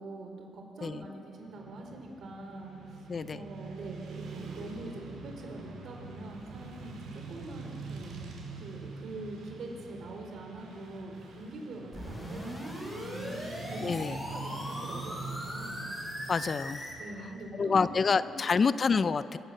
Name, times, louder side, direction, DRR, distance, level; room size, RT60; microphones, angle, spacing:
voice 1, 0.0-8.2 8.6-13.4 13.7-13.9 14.3-15.8 17.0-18.4, right 2 dB, 60° right, 2 dB, 4.5 m, -44 dB
Motorcycle / Traffic noise roadway noise, 1.4-18.0, right 3 dB, 90° right, 5.1 m, -45 dB
sound 1, 11.9-16.9, equal, 10° left, 7.3 m, -39 dB
voice 2, 13.8-14.2 16.3-16.8 17.6-19.4, left 5 dB, 35° left, 14 dB, 0.5 m, -27 dB
26.0 x 16.0 x 7.6 m, 3.0 s
cardioid pair, 120°, 0 cm